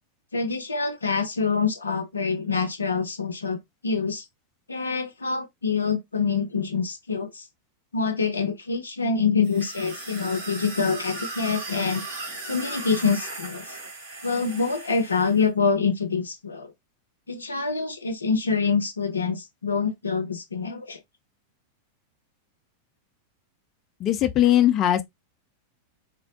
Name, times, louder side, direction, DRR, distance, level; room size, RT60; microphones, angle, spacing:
voice 1, 0.3-4.2 4.7-7.4 7.9-12.0 12.5-13.8 14.2-16.7 17.3-21.0, left 5 dB, 75° left, 0.6 m, -26 dB
sound 1, 9.4-15.4, right 2 dB, 55° right, 2.4 m, -37 dB
voice 2, 24.0-25.0, left 12 dB, 35° left, 0.6 m, -19 dB
4.4 x 2.0 x 2.8 m
figure-of-eight pair, 90°, 0 cm